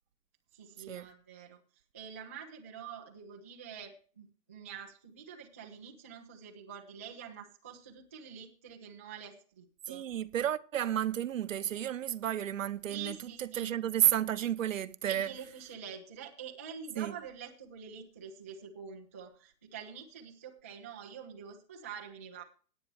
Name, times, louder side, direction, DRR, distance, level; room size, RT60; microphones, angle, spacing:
voice 1, 0.5-1.6 1.9-10.1 12.9-13.7 15.1-22.4, right 7 dB, 10° right, 0.4 m, -46 dB
voice 2, 9.9-15.3 17.0-17.1, right 10 dB, 50° right, 0.8 m, -32 dB
18.0 x 8.6 x 3.1 m
figure-of-eight pair, 120°, 49 cm